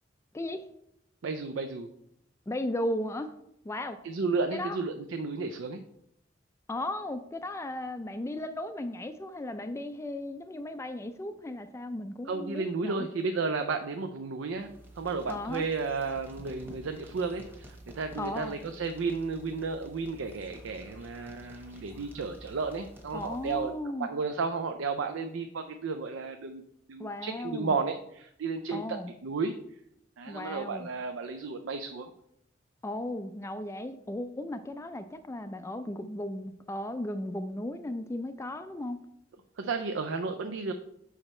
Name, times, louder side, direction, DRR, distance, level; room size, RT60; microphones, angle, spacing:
voice 1, 0.3-0.7 2.5-3.3 3.6-4.0 4.5-4.8 6.7-13.1 15.3-15.6 18.2-18.6 23.1-24.1 27.0-27.8 28.7-29.1 30.3-30.9 32.8-39.0, left 1 dB, 15° left, 10 dB, 0.3 m, -36 dB
voice 2, 1.2-1.9 4.0-5.8 12.3-14.7 15.0-26.6 26.9-28.8 29.2-29.5 30.2-32.1 39.6-40.7, right 4 dB, 75° right, 7 dB, 0.5 m, -33 dB
sound 1, 14.5-23.9, right 1 dB, 10° right, 1.1 m, -50 dB
6.3 x 4.9 x 4.2 m, 0.76 s
head